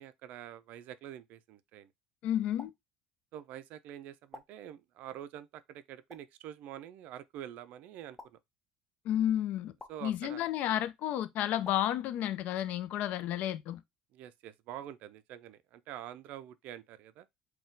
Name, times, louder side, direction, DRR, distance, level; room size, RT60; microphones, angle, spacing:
voice 1, 0.0-1.9 3.3-8.4 9.9-10.4 14.1-17.3, right 11 dB, 60° right, 0.4 m, -46 dB
voice 2, 2.2-2.7 9.1-9.7 10.0-13.8, left 11 dB, 60° left, 0.5 m, -31 dB
sound 1, 2.6-2.7 4.3-4.5 6.1-6.2 8.2-8.3 9.8-9.9 11.6-11.8, left 2 dB, 15° left, 0.8 m, -48 dB
4.1 x 2.2 x 3.8 m
cardioid pair, 130°, 3 cm